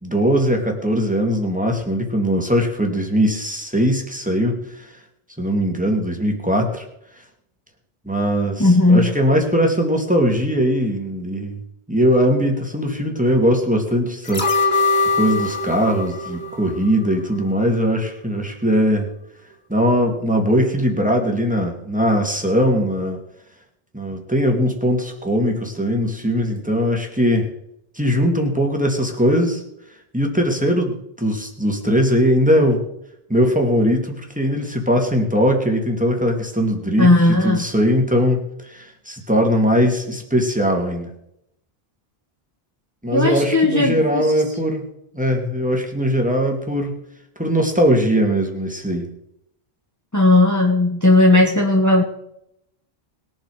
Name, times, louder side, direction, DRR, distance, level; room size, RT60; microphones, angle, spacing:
voice 1, 0.0-5.0 5.4-6.9 7.2-7.3 8.0-11.6 11.9-14.5 15.0-19.1 19.7-23.2 23.9-27.5 27.9-29.6 30.1-32.8 33.3-41.1 43.0-44.8 45.1-47.0 47.4-49.1, equal, 10° right, 2 dB, 2.3 m, -20 dB
voice 2, 8.6-9.1 37.0-37.6 43.1-44.3 50.1-52.0, left 2 dB, 15° left, 0 dB, 1.4 m, -15 dB
sound 1, 14.2-17.4 17.7-17.8, left 3 dB, 75° left, 1.9 m, -22 dB
21.0 x 7.6 x 5.0 m, 0.78 s
omnidirectional pair, 1.0 m